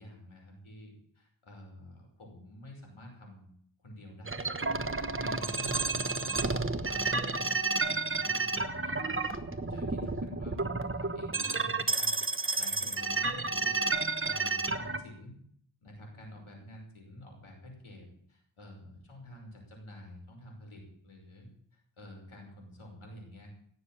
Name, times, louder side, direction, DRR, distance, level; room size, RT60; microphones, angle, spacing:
voice 1, 0.0-3.5 3.8-4.5 4.9-6.4 6.7-9.1 9.6-12.2 12.6-15.3 15.8-23.5, left 1 dB, 85° left, 0 dB, 5.8 m, -49 dB
sound 1, 4.3-15.0, right 3 dB, 25° right, 1.1 m, -31 dB
17.0 x 7.4 x 9.0 m, 0.65 s
wide cardioid pair, 85°, 48 cm